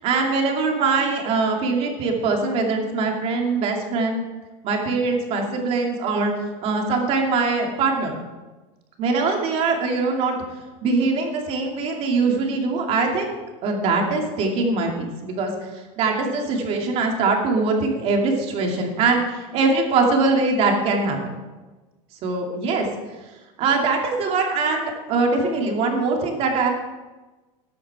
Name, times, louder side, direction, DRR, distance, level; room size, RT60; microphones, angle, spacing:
voice 1, 0.0-4.2 4.6-6.3 6.6-8.2 9.0-10.3 10.8-13.3 13.6-21.2 22.2-22.9 23.6-26.7, right 3 dB, 35° right, 1 dB, 2.5 m, -22 dB
14.0 x 10.5 x 4.8 m, 1.2 s
supercardioid pair, 155°, 17 cm